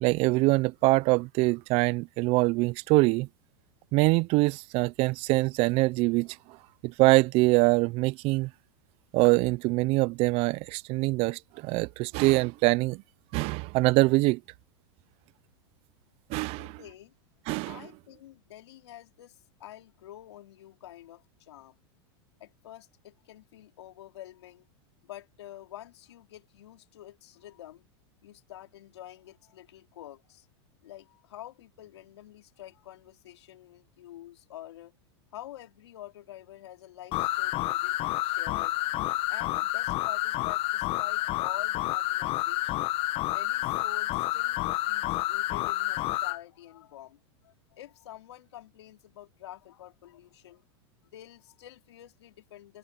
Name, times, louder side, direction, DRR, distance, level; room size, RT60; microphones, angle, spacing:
voice 1, 0.0-3.3 3.9-6.4 6.8-8.5 9.1-13.0 13.3-14.4 16.3-16.7 17.5-17.8, right 23 dB, 45° right, 0.5 m, -24 dB
voice 2, 16.6-17.1 17.6-21.8 22.4-24.6 25.0-27.9 28.2-30.5 30.8-35.0 35.3-42.9 43.3-50.6 51.1-52.8, left 13 dB, 80° left, 3.7 m, -48 dB
sound 1, 37.1-46.4, left 17 dB, 45° left, 1.2 m, -29 dB
hypercardioid pair, 120°, 14 cm